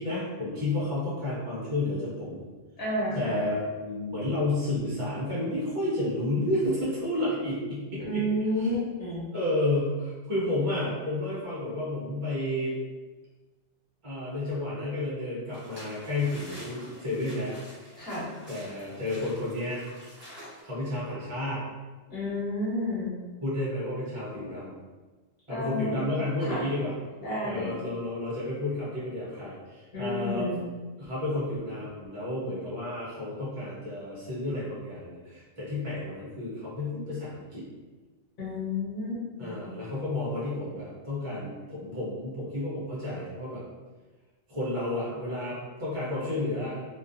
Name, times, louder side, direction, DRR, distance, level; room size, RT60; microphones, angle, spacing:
voice 1, 0.0-2.4 3.1-8.2 8.6-8.7 9.3-12.7 14.0-17.6 18.5-19.8 20.6-21.6 23.4-24.8 25.5-26.9 27.4-30.5 31.0-37.7 39.4-43.6 44.5-46.8, left 2 dB, 35° right, -8 dB, 0.6 m, -31 dB
voice 2, 2.8-3.3 8.0-9.3 18.0-18.3 22.1-23.1 25.5-26.1 26.4-26.6 27.2-27.7 29.9-30.7 38.4-39.6, left 1 dB, 50° left, -8 dB, 1.1 m, -31 dB
sound 1, 15.5-20.6, equal, 10° right, 0.8 m, -48 dB
2.3 x 2.3 x 2.5 m, 1.3 s
omnidirectional pair, 1.3 m